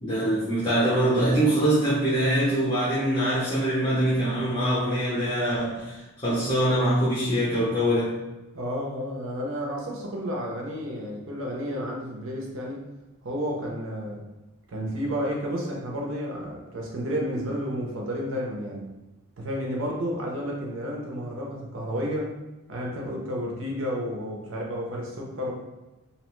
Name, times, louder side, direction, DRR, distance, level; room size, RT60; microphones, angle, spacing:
voice 1, 0.0-8.2, right 1 dB, 30° left, -9 dB, 0.7 m, -24 dB
voice 2, 8.5-12.8 13.2-14.2 14.7-18.9 19.4-22.3 22.7-25.5, equal, 60° right, -2 dB, 0.5 m, -31 dB
2.8 x 2.1 x 3.0 m, 1.0 s
head